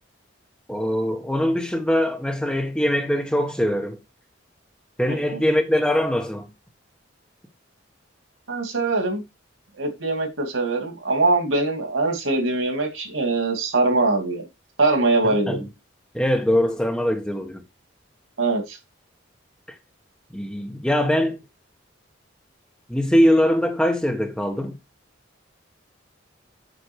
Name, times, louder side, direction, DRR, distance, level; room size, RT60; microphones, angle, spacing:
voice 1, 0.7-4.0 5.0-6.5 15.2-15.7 16.1-17.6 20.3-21.4 22.9-24.7, equal, 5° left, 1.3 m, -22 dB
voice 2, 8.5-9.2 9.7-14.5 14.8-15.6 18.4-18.8, right 3 dB, 90° right, 2.6 m, -22 dB
8.3 x 5.3 x 4.6 m
head